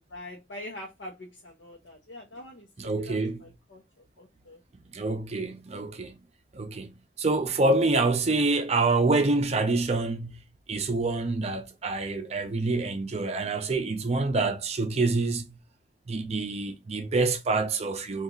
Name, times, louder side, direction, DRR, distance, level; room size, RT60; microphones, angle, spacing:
voice 1, 0.1-2.7 3.0-3.8 4.2-4.6, left 1 dB, 80° left, 0.7 m, -43 dB
voice 2, 2.8-3.4 4.9-6.2 6.5-10.3 10.7-15.4 16.1-18.2, right 3 dB, 35° right, 0.5 m, -26 dB
2.9 x 2.3 x 3.7 m
head